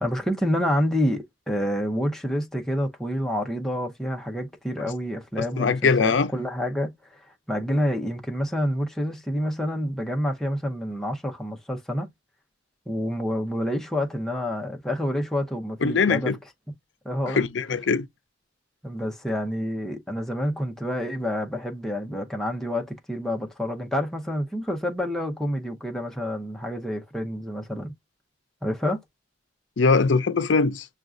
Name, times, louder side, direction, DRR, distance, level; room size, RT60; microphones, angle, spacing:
voice 1, 0.0-7.2 7.5-12.1 12.9-16.3 17.0-17.4 18.8-27.9 28.6-29.0, equal, ahead, 0.7 m, -28 dB
voice 2, 5.6-6.3 15.8-16.4 17.3-18.1 29.8-30.8, left 4 dB, 75° left, 0.5 m, -21 dB
6.1 x 2.4 x 2.5 m
head